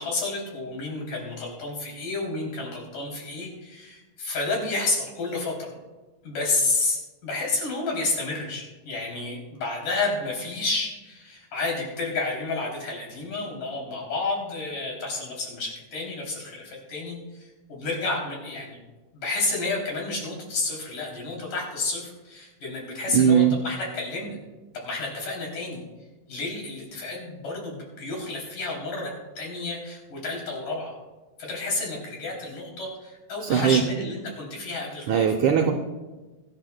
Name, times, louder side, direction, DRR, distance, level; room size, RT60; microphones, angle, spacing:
voice 1, 0.0-5.7 6.2-18.8 19.1-24.4 24.7-25.8 26.3-30.9 31.4-35.3, left 3 dB, 60° left, -2 dB, 4.5 m, -30 dB
voice 2, 23.1-23.6 33.4-33.8 35.1-35.7, right 8 dB, 80° right, 3 dB, 1.8 m, -19 dB
23.5 x 11.0 x 2.2 m, 1.2 s
omnidirectional pair, 4.3 m